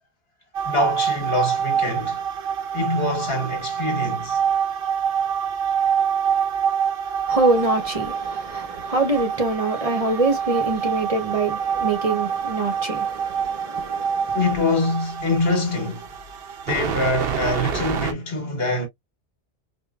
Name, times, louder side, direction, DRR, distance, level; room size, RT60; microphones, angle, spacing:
sound 1, 0.5-18.1, right 7 dB, 65° right, 0.9 m, -26 dB
voice 1, 0.6-2.2 2.7-4.4 14.3-16.1 16.6-18.9, left 2 dB, 65° left, 1.6 m, -24 dB
voice 2, 7.3-14.4, right 2 dB, 35° right, 0.9 m, -24 dB
4.9 x 2.3 x 2.3 m
omnidirectional pair, 1.1 m